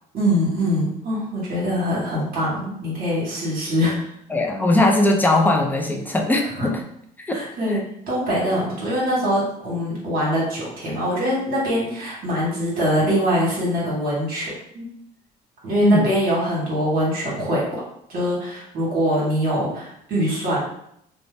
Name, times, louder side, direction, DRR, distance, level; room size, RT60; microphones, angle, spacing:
voice 1, 0.1-4.1 6.6-6.7 7.3-7.8 8.1-14.9 15.6-17.8 18.1-20.6, equal, 60° right, -6 dB, 1.3 m, -23 dB
voice 2, 4.3-6.8 7.3-7.4 15.8-16.1, left 1 dB, 10° left, 2 dB, 0.4 m, -19 dB
2.7 x 2.1 x 3.1 m, 0.73 s
cardioid pair, 110°, 17 cm